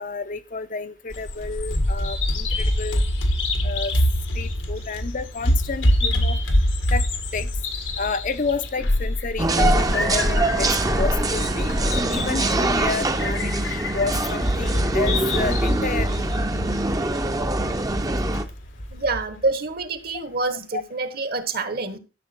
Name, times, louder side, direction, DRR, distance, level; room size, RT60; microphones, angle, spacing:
voice 1, 0.0-3.0 3.6-3.9 4.3-6.4 6.9-7.0 7.3-7.5 8.0-10.7 11.0-11.7 12.1-16.3 20.7-20.8, left 4 dB, 45° left, 0.7 m, -30 dB
Bird vocalization bird call bird song, 1.1-19.2, left 1 dB, 85° left, 1.7 m, -25 dB
sound 1, 9.4-18.4, right 2 dB, 20° right, 0.7 m, -24 dB
voice 2, 18.9-22.0, right 3 dB, 55° right, 1.5 m, -27 dB
12.5 x 6.9 x 4.4 m
head